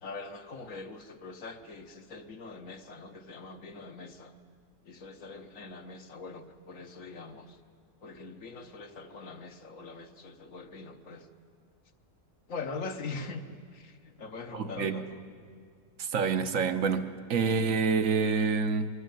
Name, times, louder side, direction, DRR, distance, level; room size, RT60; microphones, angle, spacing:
voice 1, 0.0-4.3 4.8-7.6 8.0-11.3 12.5-15.2, left 3 dB, 60° left, 7 dB, 1.4 m, -42 dB
voice 2, 14.5-15.0 16.0-18.9, right 5 dB, 60° right, 9 dB, 1.3 m, -27 dB
23.0 x 15.0 x 9.2 m, 2.1 s
omnidirectional pair, 1.7 m